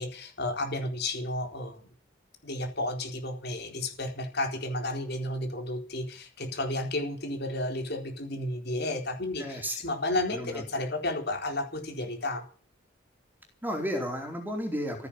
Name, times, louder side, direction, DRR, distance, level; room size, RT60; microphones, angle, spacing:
voice 1, 0.0-1.8 2.4-12.4, left 1 dB, 55° left, 4 dB, 4.1 m, -32 dB
voice 2, 9.4-9.8 10.3-10.6 13.6-15.1, equal, 10° right, 3 dB, 4.4 m, -33 dB
15.5 x 9.7 x 8.9 m, 0.39 s
head